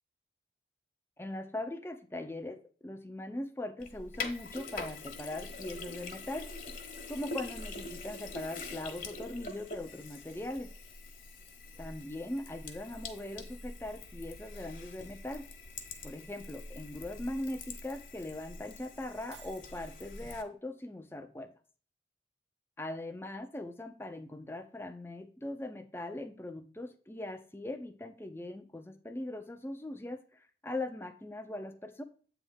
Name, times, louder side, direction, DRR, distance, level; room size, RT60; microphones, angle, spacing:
voice 1, 1.2-6.5 7.1-10.7 11.8-15.4 16.0-21.5 22.8-32.0, left 1 dB, 15° left, 8 dB, 0.6 m, -40 dB
Sink (filling or washing), 3.8-20.4, left 3 dB, 45° left, 1.2 m, -44 dB
Shatter, 19.3-19.9, right 9 dB, 75° right, 0.7 m, -55 dB
8.5 x 3.6 x 5.3 m, 0.41 s
head